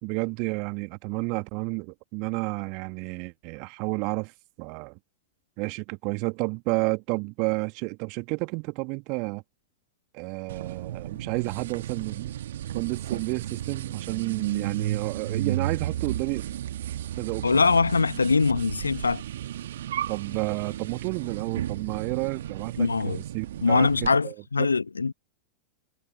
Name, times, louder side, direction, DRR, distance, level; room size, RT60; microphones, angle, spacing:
voice 1, 0.0-4.3 4.6-5.0 5.6-9.4 10.1-12.3 12.7-16.6 17.2-17.7 20.1-24.7, right 32 dB, 45° right, 2.0 m, -31 dB
sound 1, 10.5-24.1, right 11 dB, 60° right, 1.7 m, -34 dB
voice 2, 17.4-19.2 22.8-23.2 23.6-25.1, left 4 dB, 75° left, 1.1 m, -22 dB
figure-of-eight pair, 90°, 0 cm